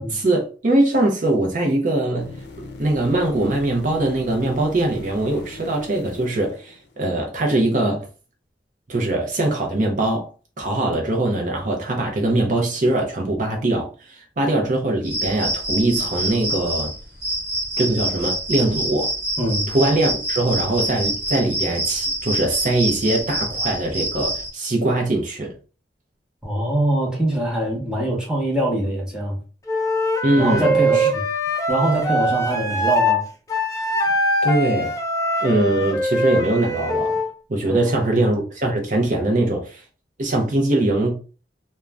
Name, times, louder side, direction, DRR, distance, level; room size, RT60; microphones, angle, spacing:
voice 1, 0.1-2.2 2.8-8.0 8.9-10.3 10.6-16.9 17.8-19.1 19.7-25.5 30.2-31.1 34.4-34.9 35.4-37.2 37.5-39.8 40.2-41.2, right 2 dB, 45° right, 0.6 m, -22 dB
sound 1, 2.2-7.3 11.2-11.3, left 3 dB, 70° left, 0.5 m, -40 dB
sound 2, 15.0-24.5, right 1 dB, 65° right, 1.0 m, -26 dB
voice 2, 19.4-19.7 26.4-29.4 30.4-31.2 31.7-33.2 37.7-38.0, right 1 dB, 5° right, 0.8 m, -23 dB
Wind instrument woodwind instrument, 29.7-33.2 33.5-37.3, equal, 20° left, 0.4 m, -22 dB
2.4 x 2.2 x 3.2 m
head